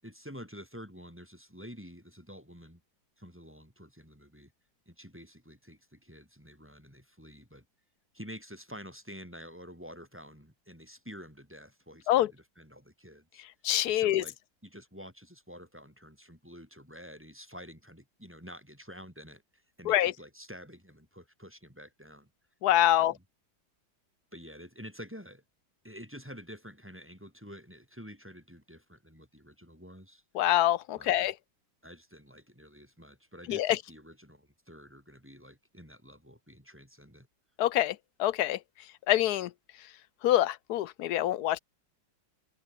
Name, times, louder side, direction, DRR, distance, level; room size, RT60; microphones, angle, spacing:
voice 1, 0.0-2.8 3.2-4.5 4.9-7.7 8.1-13.4 13.9-14.4 14.6-22.3 22.9-23.2 24.3-25.4 25.8-30.2 31.0-31.3 31.8-37.3, equal, 5° right, 7.2 m, -49 dB
voice 2, 13.6-14.2 19.9-20.1 22.6-23.1 30.4-31.3 33.5-33.7 37.6-37.9 38.2-38.6 39.1-39.5 40.2-41.6, left 13 dB, 65° left, 1.0 m, -25 dB
omnidirectional pair, 2.1 m